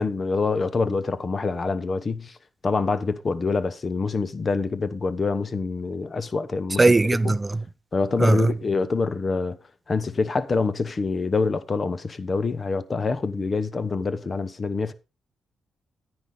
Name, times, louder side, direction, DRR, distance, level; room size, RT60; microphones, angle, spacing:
voice 1, 0.0-2.3 2.6-6.9 7.2-7.4 7.9-9.6 9.9-14.9, left 4 dB, 30° left, 0.9 m, -26 dB
voice 2, 6.8-7.6 8.2-8.5, right 3 dB, 20° right, 0.5 m, -19 dB
10.0 x 9.8 x 3.8 m
cardioid pair, 120°, 0 cm